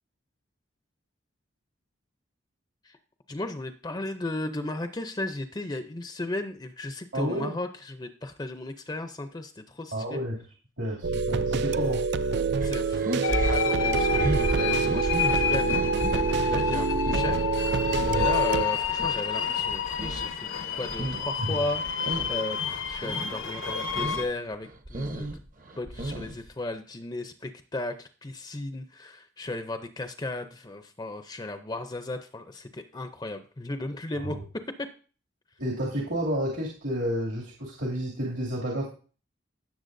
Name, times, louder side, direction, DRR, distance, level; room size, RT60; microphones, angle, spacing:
voice 1, 3.3-10.2 12.6-25.4 25.8-34.4 34.8-34.9, left 2 dB, 20° left, 8 dB, 0.5 m, -35 dB
voice 2, 7.1-7.6 9.9-10.4 10.8-12.1 18.0-18.3 21.4-21.6 34.2-34.3 35.6-38.9, equal, 75° right, -3 dB, 2.6 m, -30 dB
sound 1, 11.0-18.6, right 5 dB, 60° right, 0.4 m, -27 dB
sound 2, 12.6-19.2 19.6-21.3 21.6-22.4 22.7-23.3 23.7-24.3 24.6-26.5, right 1 dB, 45° right, 0.9 m, -34 dB
sound 3, 13.2-24.2, left 6 dB, 85° left, 1.1 m, -29 dB
16.5 x 7.0 x 2.6 m, 0.38 s
head